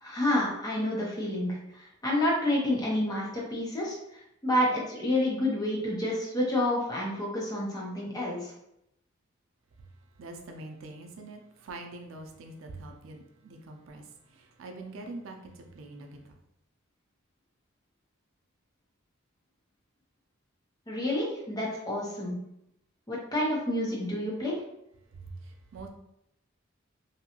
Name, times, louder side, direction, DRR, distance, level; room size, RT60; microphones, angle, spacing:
voice 1, 0.0-4.0 4.4-8.5 20.9-22.4 23.1-24.6, left 1 dB, 20° left, -4 dB, 0.7 m, -29 dB
voice 2, 10.2-14.0 14.6-16.2 25.7-25.9, right 2 dB, 85° right, 4 dB, 0.4 m, -44 dB
2.7 x 2.2 x 2.8 m, 0.79 s
head